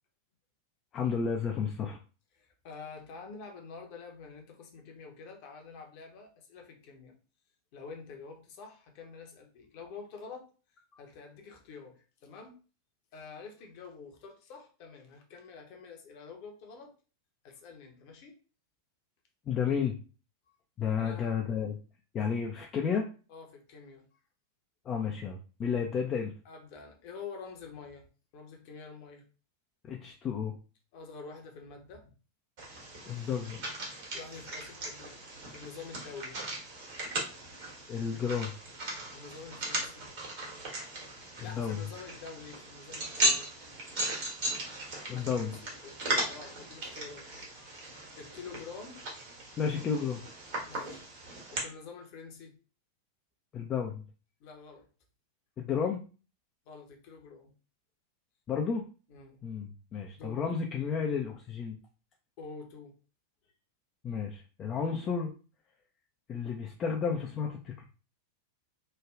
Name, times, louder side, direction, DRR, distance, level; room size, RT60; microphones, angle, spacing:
voice 1, 0.9-2.0 19.5-20.0 20.8-21.8 22.1-23.1 24.9-26.3 29.8-30.5 33.1-33.6 37.9-38.5 41.6-41.8 45.1-45.6 49.6-50.2 53.5-54.0 55.6-56.0 58.5-58.8 59.4-61.8 64.0-65.3 66.3-67.8, left 6 dB, 30° left, 1 dB, 0.4 m, -32 dB
voice 2, 2.3-7.1 7.7-10.5 11.0-12.6 13.1-16.9 17.4-18.4 20.5-20.6 21.0-21.3 23.3-24.1 26.4-28.1 28.3-29.3 30.9-32.1 34.1-35.2 35.5-36.4 39.1-40.1 41.4-43.5 45.1-47.3 47.6-47.7 48.2-49.0 50.6-51.0 51.5-52.6 54.4-54.9 56.7-57.5 59.1-59.4 60.1-60.4 62.4-62.9, left 5 dB, 45° left, 3 dB, 0.8 m, -47 dB
sound 1, 32.6-51.6, right 1 dB, 50° right, 1.3 m, -37 dB
3.1 x 2.3 x 2.4 m, 0.35 s
figure-of-eight pair, 90°, 0 cm